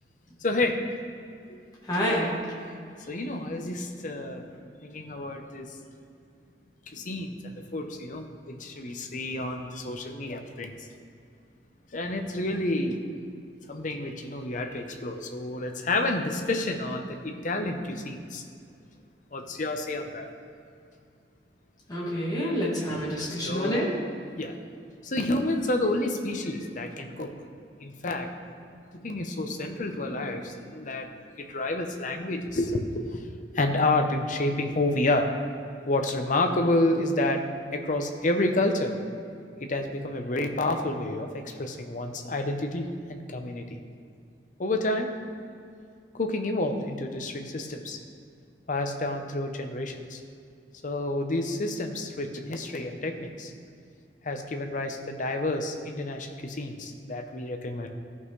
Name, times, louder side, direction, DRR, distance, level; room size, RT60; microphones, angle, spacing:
voice 1, 0.4-0.8 1.5-1.6 3.1-4.4 4.8-5.7 6.9-10.8 11.9-13.0 13.7-18.4 19.3-20.3 23.2-23.8 24.4-24.5 25.0-27.3 27.8-28.3 28.9-31.1 31.4-35.3 35.8-37.4 37.7-38.9 39.6-43.7 44.6-45.1 46.1-48.0 48.7-50.2 50.8-53.5 54.2-57.9, left 2 dB, 45° left, 4 dB, 0.8 m, -29 dB
voice 2, 1.8-2.4 21.9-24.0, equal, 20° left, -6 dB, 2.0 m, -28 dB
15.0 x 5.5 x 3.2 m, 2.4 s
head